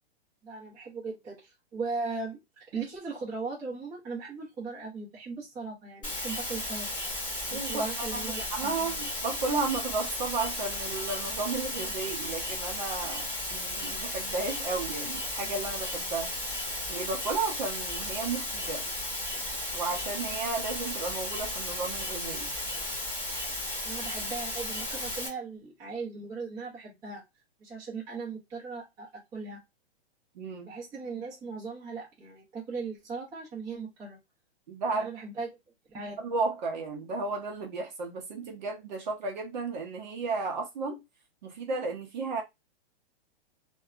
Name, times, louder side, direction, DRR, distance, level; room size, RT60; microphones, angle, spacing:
voice 1, 0.4-2.4 2.7-6.9 7.5-8.9 23.8-27.2 27.6-29.6 30.6-34.2 34.9-35.5 35.9-36.2, right 4 dB, 10° right, 0.7 m, -38 dB
sound 1, 6.0-25.3, left 1 dB, 15° left, 1.4 m, -34 dB
voice 2, 7.5-16.3 16.9-18.9 19.7-22.5 30.3-30.7 34.7-35.1 36.2-41.0 41.4-42.4, right 4 dB, 45° right, 0.7 m, -33 dB
2.6 x 2.2 x 2.3 m
hypercardioid pair, 170°, 31 cm